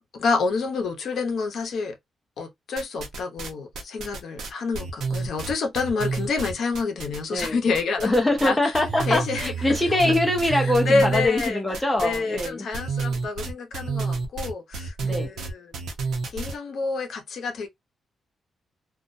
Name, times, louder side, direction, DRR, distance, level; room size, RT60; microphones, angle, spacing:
voice 1, 0.1-2.0 2.4-8.1 8.4-8.7 9.1-9.5 9.9-10.0 10.5-11.6 12.0-15.8 16.3-17.7, left 4 dB, 65° left, 0.7 m, -28 dB
sound 1, 2.8-3.5 3.8-7.5 7.7-8.5 8.7-16.6, right 4 dB, 90° right, 0.6 m, -29 dB
voice 2, 8.0-12.7 15.0-15.3, left 1 dB, 10° left, 0.6 m, -23 dB
2.3 x 2.1 x 2.5 m
wide cardioid pair, 145°, 0 cm